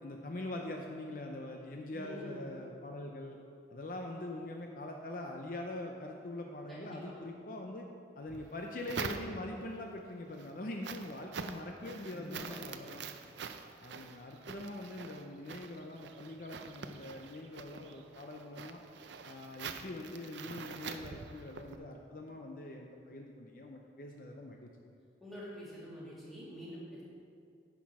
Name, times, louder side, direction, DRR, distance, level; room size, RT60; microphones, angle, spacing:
voice 1, 0.0-3.4 3.7-7.9 8.2-13.0 13.8-18.8 19.2-24.7, left 1 dB, 50° left, 2 dB, 0.6 m, -43 dB
voice 2, 1.9-2.4 6.7-7.1 12.1-12.6 25.2-27.0, equal, ahead, -9 dB, 2.3 m, -46 dB
sound 1, 8.3-9.7 10.2-21.8, right 6 dB, 80° right, 0.5 m, -45 dB
10.0 x 6.1 x 4.8 m, 2.4 s
head